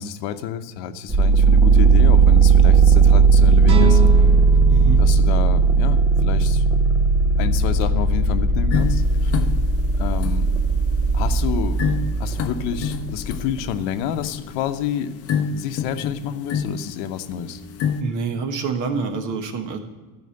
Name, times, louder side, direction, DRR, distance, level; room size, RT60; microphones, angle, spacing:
voice 1, 0.0-4.3 5.0-6.6 7.4-9.3 10.0-10.5 11.1-11.8 12.2-15.1 15.5-17.6, left 9 dB, 75° left, 10 dB, 0.8 m, -29 dB
sound 1, 1.1-13.8, right 4 dB, 10° right, 0.4 m, -16 dB
sound 2, 3.6-6.7, right 4 dB, 75° right, 1.5 m, -28 dB
voice 2, 4.7-5.0 18.0-19.8, right 5 dB, 45° right, 6 dB, 1.2 m, -26 dB
sound 3, 8.7-18.0, left 7 dB, 35° left, 0.6 m, -29 dB
13.0 x 5.0 x 7.6 m, 1.3 s
cardioid pair, 175°, 41 cm